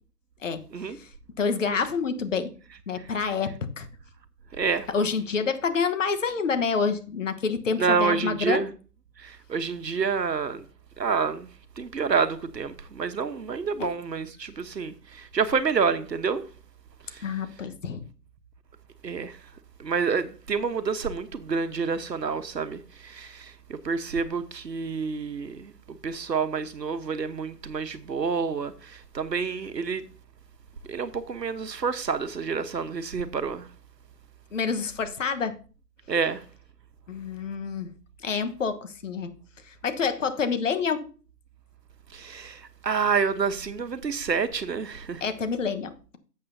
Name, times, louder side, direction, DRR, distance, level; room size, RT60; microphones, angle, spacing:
voice 1, 1.4-2.5 2.9-3.9 4.9-8.6 13.8-13.9 17.2-18.0 34.5-35.6 37.1-37.9 38.2-39.3 39.7-41.1 45.2-46.2, left 5 dB, 50° left, 1.2 m, -28 dB
voice 2, 4.5-4.9 7.8-8.7 9.2-10.7 11.0-11.5 11.8-16.4 17.1-17.2 19.0-19.4 19.8-30.0 30.9-33.7 36.1-36.4 42.1-45.2, right 5 dB, 90° right, 1.2 m, -28 dB
11.5 x 7.7 x 2.7 m
figure-of-eight pair, 155°, 49 cm